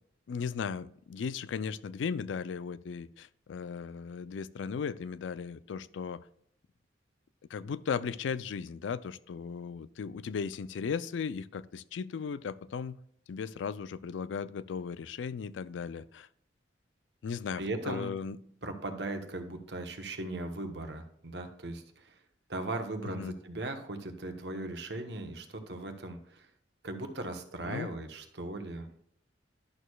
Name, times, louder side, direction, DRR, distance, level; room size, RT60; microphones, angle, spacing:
voice 1, 0.3-6.2 7.5-13.0 13.3-16.3 17.2-18.4 23.0-23.4 27.6-27.9, left 6 dB, 80° left, 17 dB, 0.4 m, -36 dB
voice 2, 17.5-18.1 18.6-22.2 22.5-26.5 26.8-28.9, right 2 dB, 65° right, 6 dB, 1.0 m, -38 dB
11.0 x 6.4 x 2.3 m, 0.70 s
head